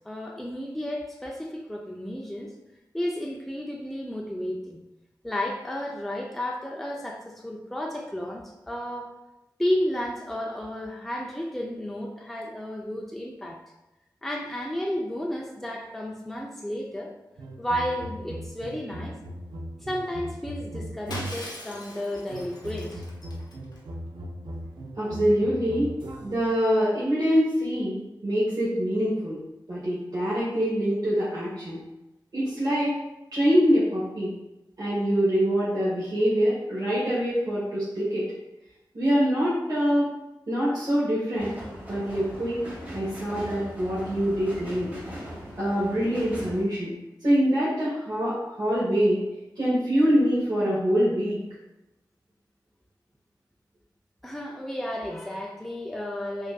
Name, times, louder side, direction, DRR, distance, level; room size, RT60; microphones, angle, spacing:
voice 1, 0.1-2.5 2.9-4.8 5.2-9.1 9.6-13.6 14.2-17.1 17.6-19.2 19.8-23.0 54.2-56.5, left 1 dB, 5° left, 0 dB, 0.4 m, -32 dB
sound 1, 17.4-21.6 22.3-26.6, right 1 dB, 85° right, 0.4 m, -39 dB
Shatter, 21.1-23.8, left 1 dB, 65° left, 0.7 m, -40 dB
voice 2, 25.0-25.9 26.2-29.4 29.7-31.8 32.3-32.9 33.3-34.3 34.8-38.2 38.9-40.1 40.5-41.5 41.9-42.6 42.9-44.9 45.6-46.9 47.2-49.2 49.5-51.4, equal, 55° right, -10 dB, 1.3 m, -24 dB
sound 2, 41.4-46.6, equal, 20° right, 1.0 m, -40 dB
4.9 x 2.5 x 2.3 m, 0.97 s
wide cardioid pair, 110°, 8 cm